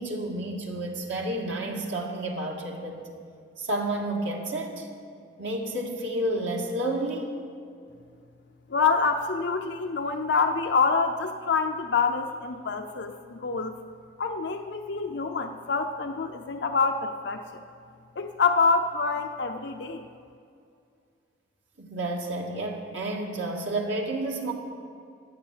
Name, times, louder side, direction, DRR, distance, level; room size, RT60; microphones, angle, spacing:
voice 1, 0.0-3.1 3.6-4.9 5.4-7.3 21.8-24.5, right 1 dB, 80° right, 0 dB, 2.0 m, -30 dB
voice 2, 8.7-13.8 14.2-17.4 18.2-20.0, left 4 dB, 65° left, 6 dB, 0.6 m, -26 dB
12.5 x 9.4 x 7.6 m, 2.4 s
head